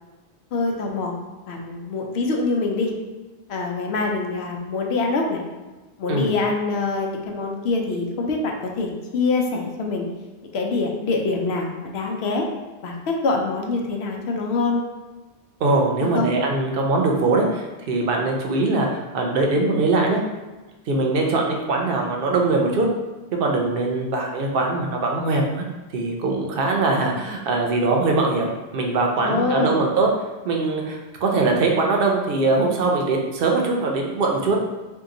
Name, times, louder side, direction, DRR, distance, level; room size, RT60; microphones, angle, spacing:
voice 1, 0.5-1.2 1.5-2.9 3.5-5.4 6.0-10.1 10.5-12.5 12.8-14.8 16.1-16.3 29.2-29.8, left 3 dB, 85° left, 1 dB, 0.8 m, -24 dB
voice 2, 15.6-20.2 20.9-22.9 23.4-25.6 25.9-30.1 30.4-34.7, right 3 dB, 65° right, 0 dB, 0.7 m, -22 dB
2.7 x 2.2 x 3.6 m, 1.2 s
omnidirectional pair, 1.0 m